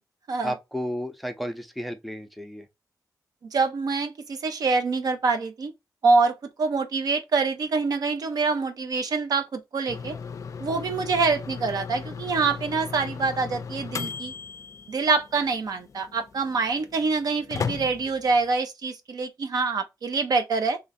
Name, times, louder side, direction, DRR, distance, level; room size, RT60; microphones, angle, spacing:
voice 1, 0.4-2.7, equal, ahead, 0.6 m, -32 dB
voice 2, 3.5-5.7 6.0-10.2 10.6-14.3 14.9-20.8, right 4 dB, 65° right, 0.6 m, -25 dB
sound 1, 9.9-18.5, left 6 dB, 50° left, 0.4 m, -37 dB
3.0 x 2.5 x 4.0 m
wide cardioid pair, 130°, 7 cm